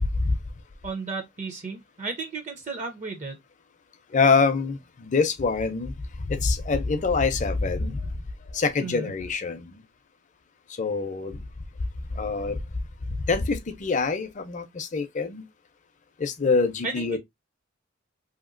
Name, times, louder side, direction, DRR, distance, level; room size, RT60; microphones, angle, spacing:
voice 1, 0.8-3.4 8.8-9.1 16.8-17.2, right 4 dB, 40° right, 0.5 m, -34 dB
voice 2, 4.1-5.9 6.3-8.0 8.5-9.7 10.8-11.4 12.2-12.6 13.3-15.4 16.2-17.2, left 4 dB, 40° left, 0.5 m, -25 dB
2.8 x 2.7 x 2.4 m
head